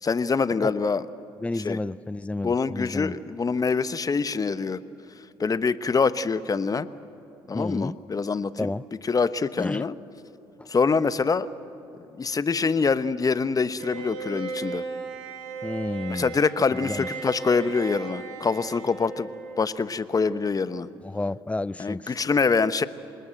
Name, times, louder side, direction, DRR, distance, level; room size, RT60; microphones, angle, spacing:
voice 1, 0.0-1.0 1.5-1.8 2.4-4.8 5.4-6.9 7.5-8.7 9.0-10.0 10.7-11.5 12.1-14.8 16.1-19.3 19.6-20.9 21.8-22.9, left 4 dB, 30° left, 1.0 m, -25 dB
voice 2, 1.4-3.1 7.5-8.0 8.6-8.8 9.6-9.8 15.6-16.3 16.8-17.1 21.0-22.1, left 2 dB, 10° left, 0.4 m, -30 dB
Bowed string instrument, 13.8-19.8, right 5 dB, 75° right, 5.6 m, -36 dB
26.0 x 20.5 x 7.7 m
hypercardioid pair, 55°, 12 cm